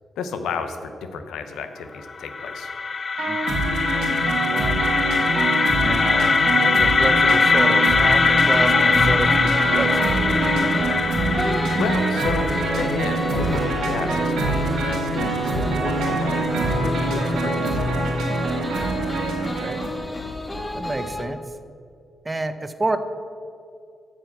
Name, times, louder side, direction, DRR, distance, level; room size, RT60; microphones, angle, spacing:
voice 1, 0.2-2.7 11.3-17.9, left 4 dB, 85° left, 8 dB, 0.7 m, -32 dB
sound 1, 2.1-14.0, left 4 dB, 45° left, 0.3 m, -21 dB
sound 2, 3.2-19.9, right 2 dB, 85° right, 1.7 m, -24 dB
voice 2, 4.5-5.0 5.8-10.2 19.6-19.8 20.7-21.4 22.2-23.0, right 2 dB, 25° right, 10 dB, 0.8 m, -29 dB
sound 3, 8.4-21.2, left 1 dB, 25° left, 1.3 m, -33 dB
9.1 x 6.2 x 7.1 m, 2.4 s
supercardioid pair, 50°, 0 cm